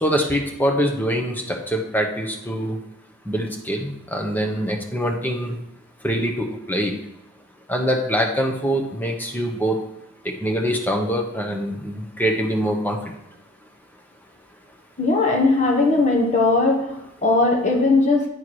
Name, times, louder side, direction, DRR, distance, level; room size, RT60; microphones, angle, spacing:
voice 1, 0.0-2.8 3.3-5.6 6.0-6.9 7.7-9.8 10.2-13.0, equal, 10° left, 2 dB, 1.0 m, -24 dB
voice 2, 15.0-18.2, left 3 dB, 30° left, 0 dB, 1.3 m, -19 dB
9.8 x 4.7 x 4.6 m, 0.82 s
head